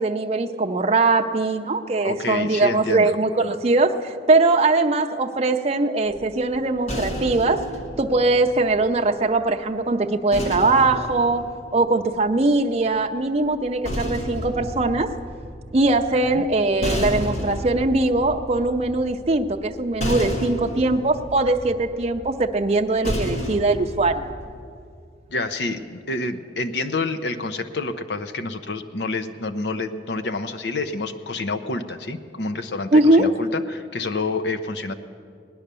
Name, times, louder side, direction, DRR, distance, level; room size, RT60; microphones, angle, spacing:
voice 1, 0.0-7.7 8.0-15.1 15.7-24.2 32.9-33.3, right 2 dB, 35° right, 4 dB, 0.6 m, -21 dB
voice 2, 2.0-3.2 16.3-16.5 25.3-34.9, left 3 dB, 70° left, 8 dB, 0.7 m, -28 dB
sound 1, 6.1-9.4 10.3-12.6 13.5-24.6, equal, 40° left, 1.2 m, -32 dB
18.0 x 10.5 x 6.8 m, 2.3 s
head